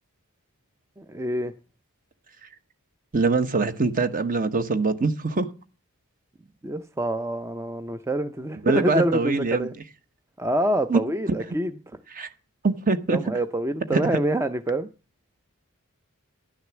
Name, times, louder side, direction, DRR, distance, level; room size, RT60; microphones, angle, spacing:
voice 1, 1.0-1.5 6.6-9.7 10.4-11.7 13.1-14.9, right 1 dB, 10° right, 0.5 m, -26 dB
voice 2, 3.1-5.5 8.6-9.7 10.9-11.0 11.5-11.6 12.1-12.3 12.6-13.2 13.9-14.0, right 3 dB, 40° right, 1.1 m, -23 dB
11.5 x 6.4 x 7.3 m
head